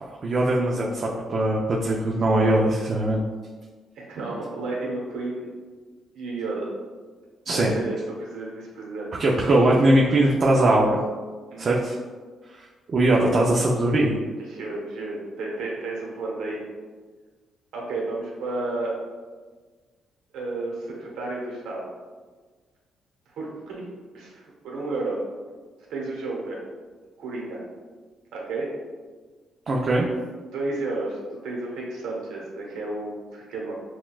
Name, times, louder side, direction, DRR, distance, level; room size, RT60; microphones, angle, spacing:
voice 1, 0.0-3.2 7.5-7.7 9.2-11.0 11.6-12.0 12.9-14.2 29.7-30.1, right 1 dB, 45° right, -2 dB, 0.5 m, -21 dB
voice 2, 4.0-5.5 6.1-6.7 7.5-9.1 11.5-11.9 14.4-16.6 17.7-18.9 20.3-21.8 23.3-23.9 24.1-25.2 25.9-26.6 27.2-27.6 28.3-28.7 30.4-33.7, right 2 dB, 80° right, -2 dB, 1.0 m, -32 dB
5.9 x 2.3 x 2.3 m, 1.4 s
cardioid pair, 90°, 0 cm